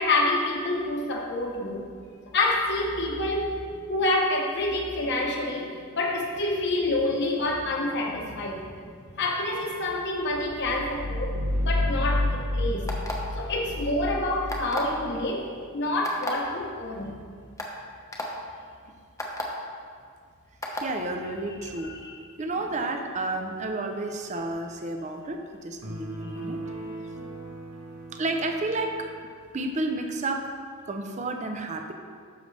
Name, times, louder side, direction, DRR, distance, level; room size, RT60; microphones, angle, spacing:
voice 1, 0.0-1.9 2.3-3.6 3.9-12.9 13.3-17.2 21.6-22.2, left 2 dB, 55° left, 0 dB, 1.2 m, -28 dB
sound 1, 10.4-15.1, left 1 dB, 55° right, 1.1 m, -29 dB
sound 2, 12.9-13.3 14.5-14.9 16.0-16.3 17.1-17.2 17.6-17.7 18.1-18.3 19.2-19.4 20.6-20.9, left 2 dB, 15° left, 0.8 m, -32 dB
voice 2, 20.8-21.9 22.4-26.6 28.1-29.1 29.5-31.9, right 2 dB, 35° right, 4 dB, 0.6 m, -31 dB
sound 3, 25.8-29.4, right 2 dB, 85° right, 1.3 m, -39 dB
10.5 x 6.5 x 3.3 m, 2.1 s
head